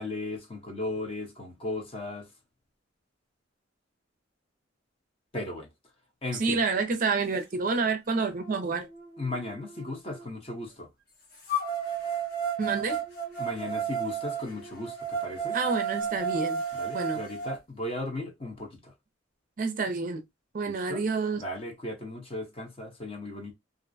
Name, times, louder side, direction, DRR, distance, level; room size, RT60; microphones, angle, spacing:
voice 1, 0.0-2.3 5.3-5.7 6.2-6.6 9.2-10.9 13.4-15.6 16.7-18.8 20.9-21.0 21.4-23.5, left 2 dB, 30° left, 0.8 m, -36 dB
voice 2, 6.3-8.9 12.6-13.0 15.5-16.6 16.9-17.2 19.6-20.2 20.5-21.4, right 4 dB, 45° right, 0.4 m, -28 dB
sound 1, 7.7-7.8 8.3-10.2 11.5-17.5, right 5 dB, 55° left, 0.9 m, -33 dB
2.5 x 2.0 x 2.5 m
head